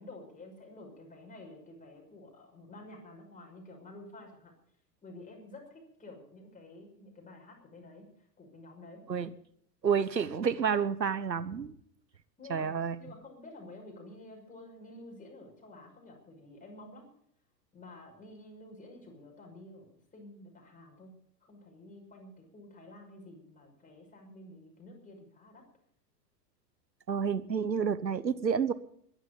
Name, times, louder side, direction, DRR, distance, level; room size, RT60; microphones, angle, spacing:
voice 1, 0.0-4.5 5.0-9.0 12.4-17.1 17.7-21.1 21.4-25.6, left 2 dB, 15° left, 1 dB, 6.2 m, -50 dB
voice 2, 9.8-11.7 12.5-12.9 27.1-28.7, right 6 dB, 85° right, 13 dB, 1.2 m, -29 dB
21.5 x 11.5 x 5.4 m, 0.67 s
figure-of-eight pair, 95°, 50 cm